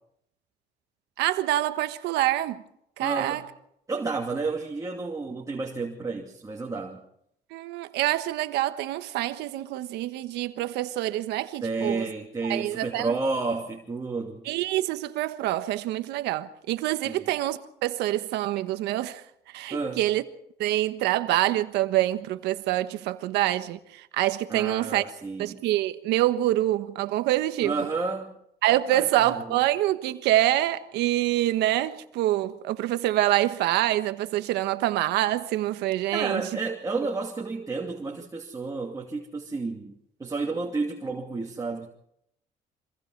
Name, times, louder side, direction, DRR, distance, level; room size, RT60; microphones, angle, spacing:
voice 1, 1.2-2.6 3.0-3.4 7.5-12.1 12.5-13.1 14.4-19.2 19.5-20.2 20.6-25.0 25.4-27.7 28.6-36.4, right 14 dB, 90° right, 1.3 m, -26 dB
voice 2, 3.0-3.4 3.9-7.0 11.6-14.4 17.0-17.3 19.7-20.1 24.5-25.6 27.6-28.3 28.9-29.4 36.1-41.9, right 3 dB, 20° right, 2.5 m, -31 dB
25.5 x 23.0 x 4.7 m
cardioid pair, 110°, 17 cm